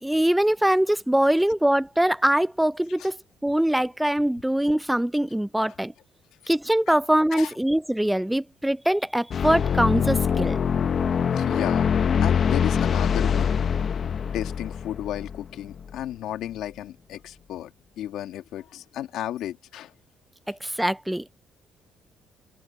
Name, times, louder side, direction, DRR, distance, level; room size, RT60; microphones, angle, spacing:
voice 1, 0.0-3.2 3.4-5.9 6.5-10.6 20.5-21.3, right 1 dB, 5° right, 0.3 m, -23 dB
sound 1, 9.3-16.0, left 7 dB, 40° left, 0.7 m, -24 dB
voice 2, 11.3-11.9 12.2-13.5 14.3-19.9, left 12 dB, 85° left, 1.7 m, -33 dB
open air
cardioid pair, 140°, 0 cm